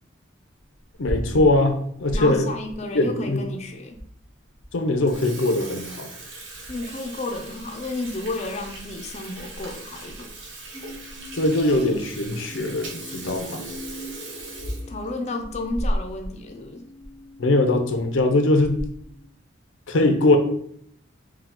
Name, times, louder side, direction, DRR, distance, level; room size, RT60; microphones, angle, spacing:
Water tap faucet / Sink (filling or washing), 0.8-2.2 2.7-2.8 3.5-3.6 4.0-4.1 4.4-4.6 4.9-16.3 16.6-16.7 17.0-17.1 17.9-18.2 18.6-19.0, right 1 dB, 70° right, 1.2 m, -35 dB
voice 1, 1.0-2.5 2.9-3.4 4.7-6.1 11.3-13.6 17.4-18.8 19.9-20.4, left 2 dB, 90° left, 6 dB, 0.6 m, -21 dB
voice 2, 2.1-4.0 6.7-10.3 14.9-16.9, left 2 dB, 35° left, 3 dB, 0.5 m, -32 dB
sound 1, 10.7-18.2 18.8-19.3, equal, 10° right, 0.8 m, -44 dB
4.7 x 2.3 x 3.6 m, 0.64 s
head